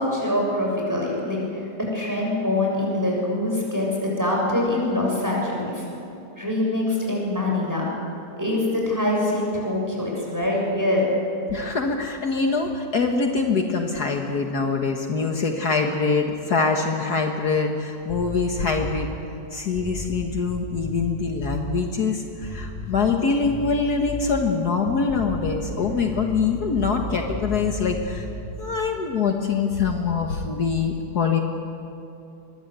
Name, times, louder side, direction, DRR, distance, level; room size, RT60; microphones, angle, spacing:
voice 1, 0.0-5.8 6.4-7.9 8.4-11.1, left 1 dB, 10° right, -2 dB, 7.2 m, -24 dB
voice 2, 11.5-19.1 19.5-28.2 28.6-31.4, left 4 dB, 60° left, 3 dB, 2.0 m, -24 dB
sound 1, 18.1-19.1 19.7-21.6 22.4-23.1 23.4-24.4 25.0-28.7, left 2 dB, 30° left, 4.8 m, -34 dB
24.5 x 22.0 x 8.1 m, 2.8 s
omnidirectional pair, 1.9 m